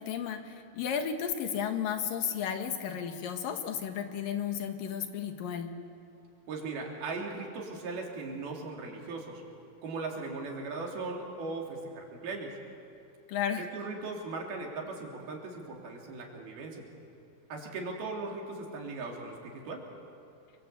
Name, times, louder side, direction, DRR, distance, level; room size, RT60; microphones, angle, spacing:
voice 1, 0.0-5.7 13.3-13.7, left 8 dB, 70° left, 6 dB, 3.1 m, -33 dB
voice 2, 6.5-9.4 9.8-12.6 13.6-16.9 17.5-19.8, right 3 dB, 85° right, 0 dB, 5.1 m, -38 dB
29.5 x 23.5 x 8.3 m, 2.6 s
omnidirectional pair, 4.2 m